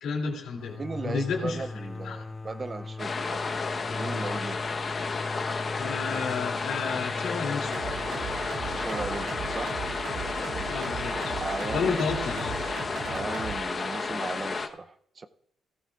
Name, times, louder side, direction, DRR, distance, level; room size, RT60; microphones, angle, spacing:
voice 1, 0.0-1.6 2.0-2.2 4.9-5.1 5.7-7.7 10.5-11.4 11.7-12.6, left 5 dB, 80° left, 1 dB, 2.7 m, -32 dB
sound 1, 0.5-10.0, left 3 dB, 20° left, 0.4 m, -40 dB
voice 2, 0.8-3.4 3.9-4.7 8.8-9.7 11.4-12.2 13.1-15.3, right 3 dB, 30° right, 11 dB, 0.6 m, -37 dB
sound 2, 3.0-14.7, left 4 dB, 40° left, 1.0 m, -32 dB
sound 3, 7.7-13.6, right 6 dB, 90° right, 2.2 m, -37 dB
17.0 x 14.0 x 2.4 m, 0.73 s
cardioid pair, 90°, 0 cm